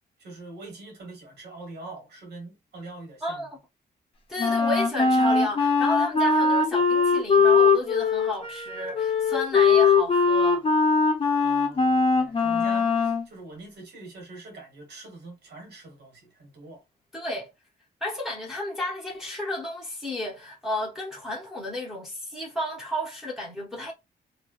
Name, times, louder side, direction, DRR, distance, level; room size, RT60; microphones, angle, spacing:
voice 1, 0.2-3.4 11.4-16.8, right 2 dB, 70° right, 1.5 m, -43 dB
voice 2, 4.3-10.6 17.1-17.5 18.0-23.9, left 1 dB, ahead, 0.8 m, -32 dB
Wind instrument woodwind instrument, 4.4-13.3, left 4 dB, 30° left, 0.7 m, -21 dB
3.1 x 2.3 x 2.4 m
wide cardioid pair, 145°, 18 cm